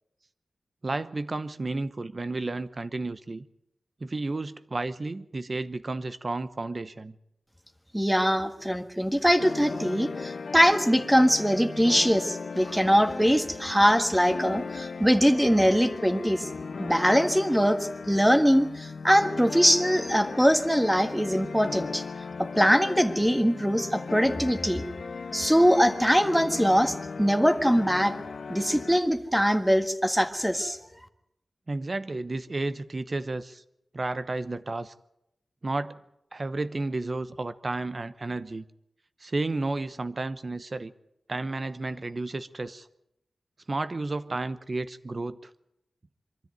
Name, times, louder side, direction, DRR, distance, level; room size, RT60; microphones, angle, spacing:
voice 1, 0.8-3.4 4.0-7.1 31.7-33.6 33.9-34.9 35.6-36.0 36.3-38.6 39.2-40.9 41.3-42.9 43.7-45.5, right 2 dB, 40° right, 13 dB, 0.9 m, -32 dB
voice 2, 7.9-16.5 16.8-22.0 22.4-24.8 25.3-28.1 28.5-30.8, equal, 5° right, 8 dB, 1.7 m, -22 dB
sound 1, 9.4-29.0, left 5 dB, 75° left, 1.0 m, -37 dB
23.5 x 13.5 x 9.3 m, 0.82 s
wide cardioid pair, 95°, 0 cm